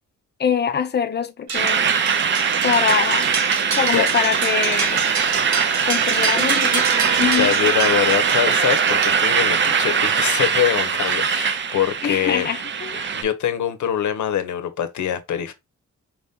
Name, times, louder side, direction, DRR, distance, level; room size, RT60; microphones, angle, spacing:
voice 1, 0.4-1.9 2.6-3.4 3.7-5.0 5.8-7.6 12.0-13.1, left 7 dB, 35° left, 0.5 m, -24 dB
sound 1, 1.5-13.2, right 6 dB, 40° right, 0.5 m, -21 dB
sound 2, 1.5-9.7, right 5 dB, 65° right, 1.0 m, -28 dB
voice 2, 7.4-12.5 13.1-15.5, left 9 dB, 75° left, 0.8 m, -23 dB
4.6 x 2.7 x 3.4 m
wide cardioid pair, 155°, 30 cm